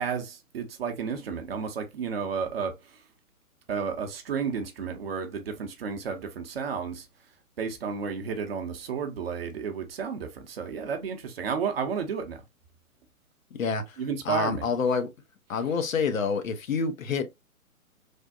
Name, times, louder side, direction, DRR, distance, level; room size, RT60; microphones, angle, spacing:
voice 1, 0.0-2.8 3.7-7.1 7.6-12.4 14.0-14.7, right 6 dB, 45° right, 0.6 m, -32 dB
voice 2, 13.5-15.1 15.5-17.3, left 5 dB, 65° left, 0.8 m, -28 dB
3.3 x 2.1 x 2.5 m
figure-of-eight pair, 130°, 44 cm